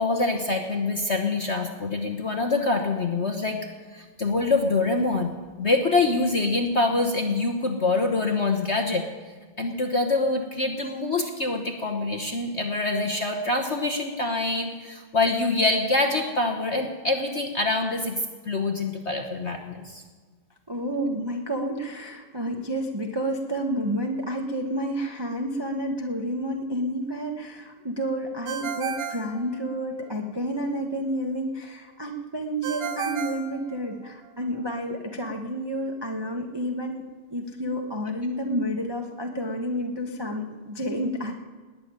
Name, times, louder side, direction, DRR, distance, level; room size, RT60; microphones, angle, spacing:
voice 1, 0.0-5.3 5.6-9.0 9.6-20.0, left 3 dB, 40° left, 4 dB, 1.0 m, -25 dB
voice 2, 20.7-37.0 37.3-41.3, equal, 20° right, 2 dB, 0.7 m, -30 dB
Ringtone, 28.5-30.1 32.6-34.3, right 7 dB, 75° right, 2.0 m, -34 dB
19.0 x 7.0 x 9.7 m, 1.4 s
omnidirectional pair, 2.4 m